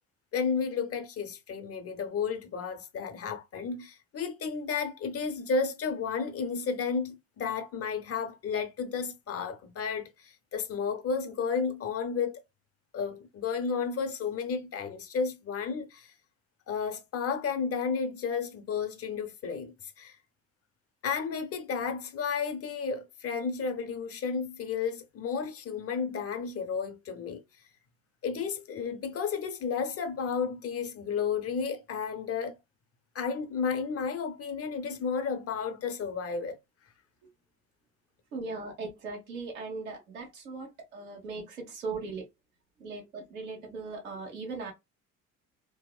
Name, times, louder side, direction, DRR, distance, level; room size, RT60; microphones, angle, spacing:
voice 1, 0.3-12.4 12.9-16.1 16.7-20.2 21.0-27.4 28.2-32.6 33.1-36.6, left 5 dB, 35° left, 0.6 m, -32 dB
voice 2, 38.3-42.2 42.8-44.7, right 3 dB, 90° right, 1.1 m, -39 dB
2.7 x 2.0 x 2.3 m
hypercardioid pair, 60°, 40 cm